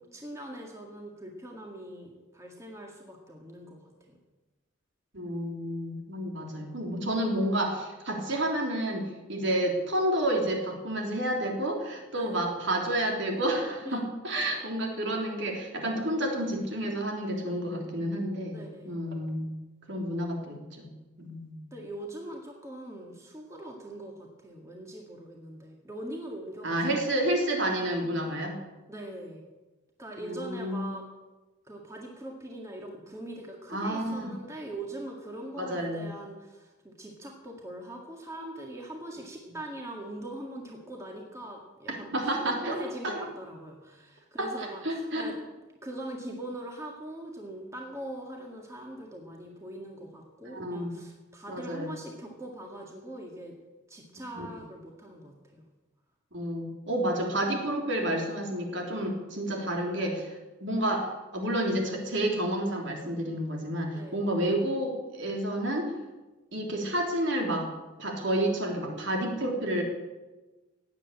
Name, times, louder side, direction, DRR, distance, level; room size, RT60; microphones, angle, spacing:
voice 1, 0.0-4.2 12.2-12.5 13.8-14.2 18.5-19.0 21.7-26.8 28.9-29.4 30.0-31.0 31.6-45.3 45.8-53.6 53.9-55.6 63.9-64.2, right 1 dB, 15° right, 0 dB, 1.9 m, -42 dB
voice 2, 5.1-9.0 9.3-19.5 19.9-20.9 21.2-21.6 26.6-28.5 30.2-30.8 33.7-34.3 35.6-36.1 42.1-42.8 43.0-43.1 44.4-45.4 50.4-50.9 51.5-51.9 54.3-54.5 56.3-60.3 60.6-65.9 66.5-67.7 68.0-69.8, right 1 dB, 55° right, 1 dB, 3.4 m, -30 dB
17.0 x 9.6 x 8.6 m, 1.1 s
head